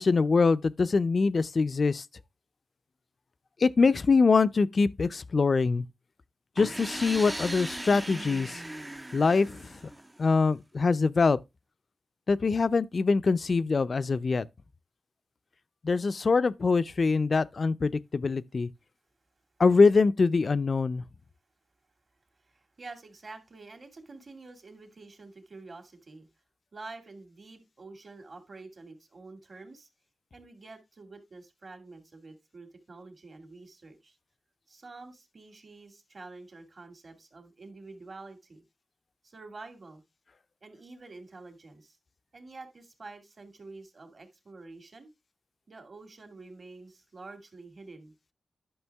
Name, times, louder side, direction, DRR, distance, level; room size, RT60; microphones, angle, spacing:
voice 1, 0.0-2.0 3.6-5.8 6.6-8.6 9.1-9.7 10.2-11.4 12.3-14.4 15.8-18.7 19.6-21.0, left 4 dB, 50° left, 0.5 m, -24 dB
sound 1, 6.6-10.3, right 1 dB, 15° right, 0.6 m, -38 dB
voice 2, 22.4-26.3 26.7-29.9 30.3-34.2 34.7-38.6 39.2-40.0 40.6-42.0 42.3-45.1 45.7-48.1, right 3 dB, 45° right, 2.3 m, -48 dB
11.0 x 6.1 x 3.5 m
wide cardioid pair, 95°, 0 cm